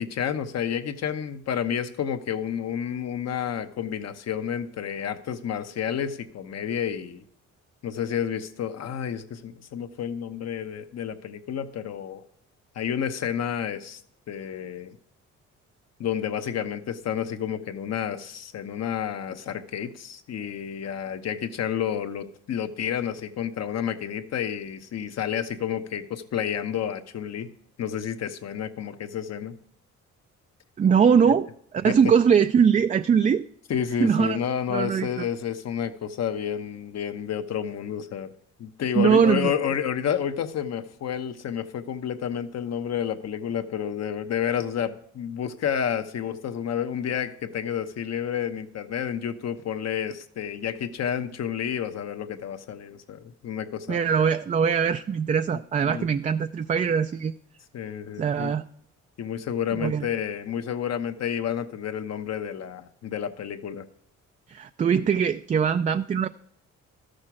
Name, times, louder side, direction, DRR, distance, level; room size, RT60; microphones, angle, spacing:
voice 1, 0.0-7.2 7.8-12.2 12.7-14.0 14.3-15.0 16.0-27.5 27.8-29.5 31.3-31.4 31.8-31.9 33.7-38.3 38.6-54.0 55.8-56.1 57.7-58.5 59.2-63.8, left 8 dB, 60° left, 9 dB, 1.0 m, -30 dB
voice 2, 30.8-31.5 31.8-33.4 34.0-34.4 34.7-35.3 38.9-39.5 53.9-57.3 58.2-58.6 59.8-60.1 64.5-66.3, right 7 dB, 25° right, 9 dB, 0.3 m, -21 dB
13.0 x 6.5 x 6.0 m, 0.69 s
cardioid pair, 90°, 30 cm